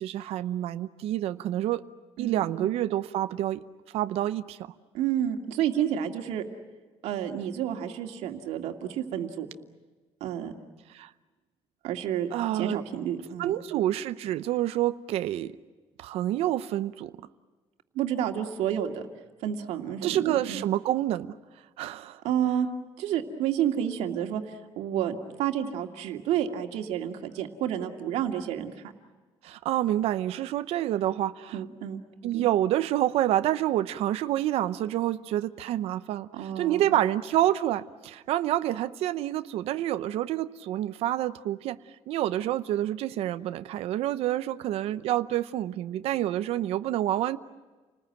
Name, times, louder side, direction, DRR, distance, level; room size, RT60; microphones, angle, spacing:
voice 1, 0.0-1.8 2.2-3.6 3.9-4.7 10.9-11.1 12.3-12.8 13.4-15.6 16.0-17.1 20.0-21.3 21.8-22.2 29.4-31.6 32.2-41.8 42.1-47.4, right 13 dB, 70° right, 11 dB, 0.8 m, -28 dB
voice 2, 2.2-2.7 4.9-6.4 7.0-9.5 10.2-10.5 11.8-12.3 12.5-13.5 17.9-19.1 19.4-20.6 22.2-22.7 23.0-28.9 31.5-32.4 36.3-36.8, right 10 dB, 90° right, 4 dB, 2.4 m, -30 dB
29.5 x 20.0 x 9.0 m, 1.3 s
cardioid pair, 170°, 11 cm